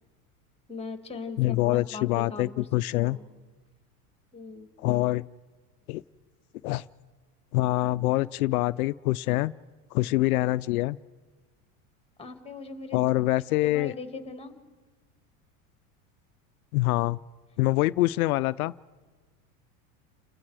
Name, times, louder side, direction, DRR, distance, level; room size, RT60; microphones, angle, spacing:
voice 1, 0.7-2.7 3.0-3.3 4.3-4.7 12.2-13.1 13.6-14.5, left 4 dB, 15° left, 7 dB, 2.0 m, -39 dB
voice 2, 1.4-3.2 4.8-5.2 5.9-6.0 6.6-6.9 7.5-9.5 9.9-11.0 12.9-13.9 16.7-17.2 17.6-18.7, left 18 dB, 85° left, 15 dB, 0.5 m, -25 dB
29.5 x 21.0 x 4.8 m, 1.4 s
supercardioid pair, 110°, 43 cm